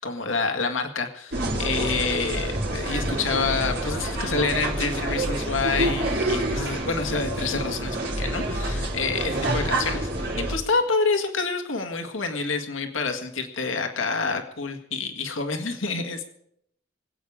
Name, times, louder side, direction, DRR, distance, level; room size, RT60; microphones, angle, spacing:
voice 1, 0.0-16.3, left 4 dB, 80° left, 5 dB, 1.9 m, -28 dB
sound 1, 1.3-10.6, right 1 dB, 55° right, 4.3 m, -27 dB
25.5 x 8.8 x 4.9 m, 0.70 s
head